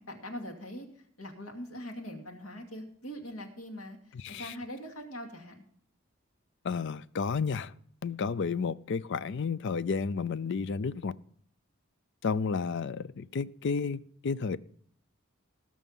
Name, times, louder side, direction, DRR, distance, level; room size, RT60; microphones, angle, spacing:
voice 1, 0.0-4.0 4.3-5.6, equal, 80° left, 2.4 m, -42 dB
voice 2, 4.1-4.5 6.6-7.7 8.0-11.1 12.2-14.6, left 5 dB, 60° left, 0.4 m, -32 dB
18.5 x 6.3 x 5.4 m
head